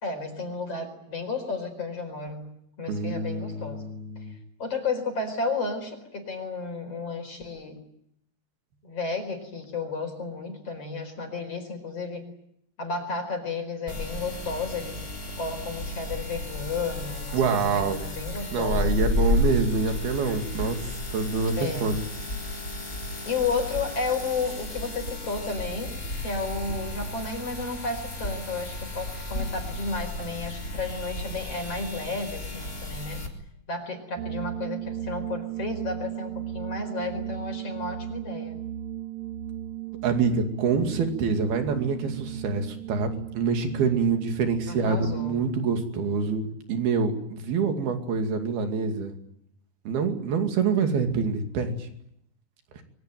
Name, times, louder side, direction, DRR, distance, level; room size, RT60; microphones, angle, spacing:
voice 1, 0.0-2.5 2.8-3.9 4.6-7.8 8.8-12.2 12.8-15.1 15.4-19.0 21.6-21.9 23.3-25.9 26.2-33.2 33.7-38.6 44.7-45.5, left 4 dB, 35° left, 6 dB, 5.3 m, -32 dB
voice 2, 2.9-4.3 17.3-18.1 18.5-22.0 40.0-49.2 49.9-51.9 52.7-52.8, right 5 dB, 70° right, 5 dB, 4.4 m, -26 dB
sound 1, 13.9-33.3, left 2 dB, 20° left, 3.7 m, -32 dB
sound 2, 34.2-45.3, right 11 dB, 50° right, 2.6 m, -36 dB
25.5 x 23.5 x 9.0 m, 0.74 s
omnidirectional pair, 4.7 m